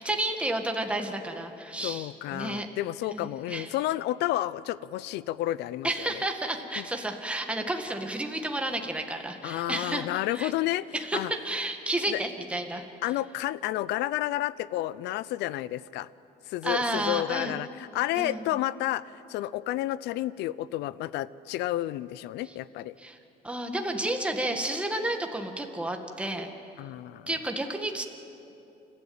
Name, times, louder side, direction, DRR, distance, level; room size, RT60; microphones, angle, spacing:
voice 1, 0.0-2.7 3.1-3.7 5.8-10.1 10.3-10.5 10.9-12.9 16.6-17.6 18.2-18.5 22.5-22.6 23.0-23.2 23.4-26.5 27.3-28.0, right 1 dB, 5° right, 4 dB, 1.8 m, -31 dB
voice 2, 1.8-5.9 6.1-6.2 6.8-6.9 9.4-10.9 11.1-11.3 12.1-12.2 13.0-16.1 16.5-19.0 19.3-22.9 26.8-27.3, left 15 dB, 85° left, 18 dB, 0.6 m, -31 dB
29.0 x 12.5 x 8.8 m, 2.8 s
cardioid pair, 110°, 17 cm